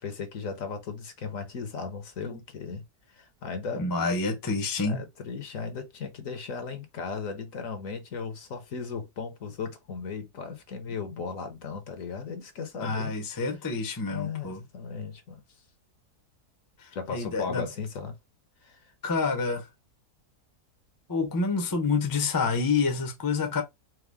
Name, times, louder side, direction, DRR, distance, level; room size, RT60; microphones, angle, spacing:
voice 1, 0.0-2.8 3.1-3.9 4.8-13.5 14.1-15.4 16.9-18.2 18.6-18.8, left 5 dB, 60° left, 1.3 m, -36 dB
voice 2, 3.8-5.0 12.8-14.6 17.1-17.6 19.0-19.6 21.1-23.6, left 4 dB, 20° left, 0.6 m, -28 dB
4.6 x 2.2 x 3.4 m
omnidirectional pair, 1.6 m